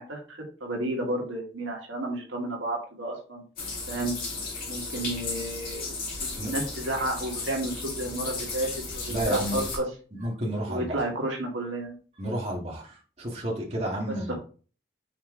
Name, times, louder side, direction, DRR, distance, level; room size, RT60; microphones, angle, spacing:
voice 1, 0.0-3.4 3.9-4.1 4.7-5.9 6.2-9.9 10.7-12.0 14.3-14.4, right 1 dB, 90° right, 0 dB, 1.8 m, -31 dB
sound 1, 3.6-9.8, left 3 dB, 50° left, 2.5 m, -35 dB
voice 2, 9.1-9.6 10.1-11.1 12.2-14.3, right 1 dB, 35° right, -3 dB, 1.7 m, -31 dB
5.8 x 4.3 x 3.7 m, 0.38 s
head